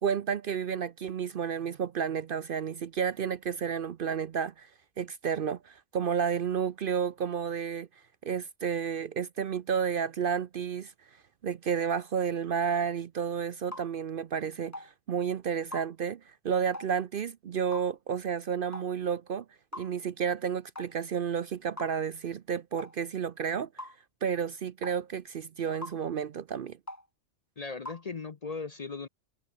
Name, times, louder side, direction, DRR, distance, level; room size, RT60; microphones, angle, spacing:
voice 1, 0.0-4.7 5.0-7.9 8.2-10.9 11.4-19.4 19.7-23.7 24.2-26.8, right 7 dB, 55° right, 0.7 m, -31 dB
sound 1, 13.7-13.9 14.7-14.9 15.7-15.9 16.7-16.9 17.7-17.9 18.7-18.9 19.7-19.9 20.8-20.9 21.8-22.0 22.8-22.9 23.8-24.0 24.8-25.0 25.8-26.0 26.9-27.1 27.9-28.0, left 1 dB, 15° left, 2.7 m, -42 dB
voice 2, 27.6-29.1, left 4 dB, 40° left, 0.7 m, -38 dB
omnidirectional pair, 1.3 m